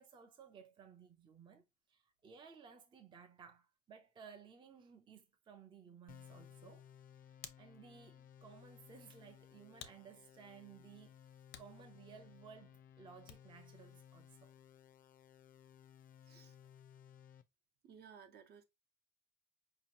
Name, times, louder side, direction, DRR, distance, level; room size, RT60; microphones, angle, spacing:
voice 1, 0.0-1.6 1.9-6.9 7.2-14.6, right 6 dB, 25° right, 0.5 m, -58 dB
sound 1, 6.1-17.4, left 9 dB, 45° left, 0.4 m, -60 dB
Hands, 6.8-13.7, left 9 dB, 80° left, 0.7 m, -60 dB
voice 2, 16.2-16.5 17.8-18.6, right 7 dB, 55° right, 0.8 m, -58 dB
5.0 x 2.8 x 2.8 m
cardioid pair, 175°, 20 cm